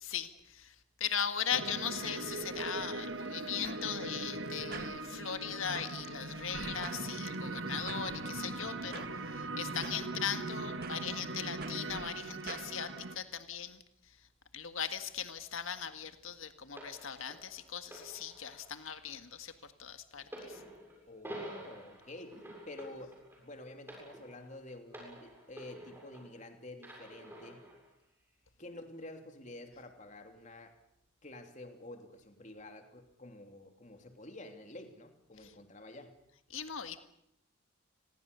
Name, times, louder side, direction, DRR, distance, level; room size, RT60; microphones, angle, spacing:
voice 1, 0.0-9.1 9.6-13.8 14.5-19.5 19.8-20.6 36.5-37.0, left 8 dB, 80° left, 9 dB, 1.7 m, -39 dB
sound 1, 1.5-13.1, right 2 dB, 65° right, 2.0 m, -40 dB
sound 2, 2.3-12.7, right 4 dB, 45° right, 1.9 m, -51 dB
voice 2, 8.6-9.2 21.1-22.4 22.7-27.7 28.6-30.7 31.2-36.2, left 1 dB, 35° left, 5 dB, 3.0 m, -49 dB
sound 3, 16.8-26.4 26.8-27.8 28.6-28.8, equal, 10° right, 7.5 m, -49 dB
30.0 x 22.0 x 6.9 m, 0.76 s
head